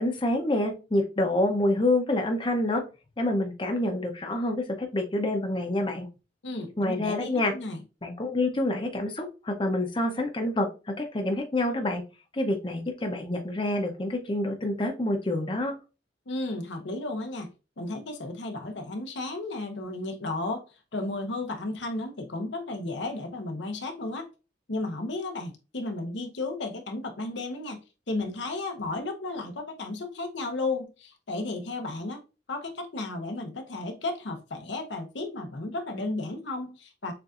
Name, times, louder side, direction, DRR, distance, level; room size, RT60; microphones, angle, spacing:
voice 1, 0.0-2.8 3.2-6.1 6.8-7.5 8.0-12.0 12.3-15.8, left 1 dB, 25° left, 0.6 m, -27 dB
voice 2, 6.4-7.8 16.3-20.6 20.9-24.3 24.7-27.8 28.1-32.2 32.5-37.1, left 2 dB, 80° left, 0.8 m, -33 dB
6.8 x 2.5 x 2.4 m
head